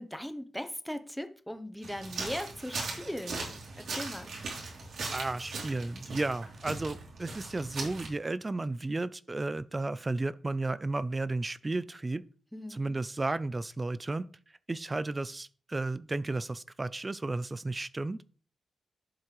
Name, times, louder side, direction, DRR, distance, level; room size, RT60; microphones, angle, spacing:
voice 1, 0.0-4.3 12.5-12.9, equal, ahead, 0.8 m, -39 dB
sound 1, 1.8-8.1, right 3 dB, 80° right, 3.2 m, -39 dB
voice 2, 5.1-12.2 12.7-14.3 14.7-18.2, right 2 dB, 20° right, 0.4 m, -33 dB
11.0 x 7.2 x 3.2 m
wide cardioid pair, 155°, 0 cm